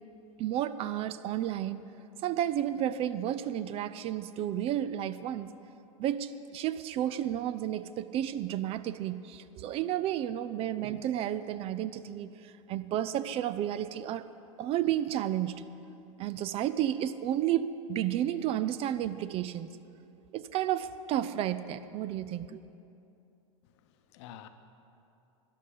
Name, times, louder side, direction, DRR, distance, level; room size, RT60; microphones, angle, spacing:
voice 1, 0.4-1.8 2.2-5.5 6.0-14.2 14.6-15.6 16.2-19.7 20.3-22.6, right 11 dB, 35° right, 0.4 m, -32 dB
voice 2, 23.6-24.5, left 10 dB, 60° left, 0.9 m, -50 dB
13.0 x 10.5 x 5.3 m
hypercardioid pair, 110°, 17 cm